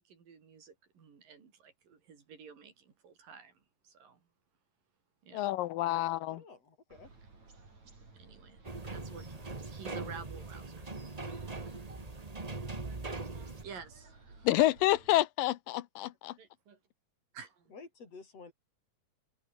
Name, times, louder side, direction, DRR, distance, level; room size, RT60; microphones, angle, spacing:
voice 1, 0.1-3.5 3.9-4.2 5.3-5.5 8.2-8.6 8.9-10.9 12.6-14.1 14.4-14.5 16.4-16.8 17.3-17.6, right 6 dB, 80° right, 5.7 m, -51 dB
voice 2, 5.3-6.4 14.4-16.3, left 15 dB, 90° left, 2.7 m, -28 dB
voice 3, 6.3-7.1 17.7-18.5, left 4 dB, 45° left, 5.6 m, -51 dB
sound 1, 6.9-15.2, right 3 dB, 55° right, 8.4 m, -57 dB
sound 2, 8.6-13.6, right 3 dB, 35° right, 0.6 m, -41 dB
omnidirectional pair, 3.8 m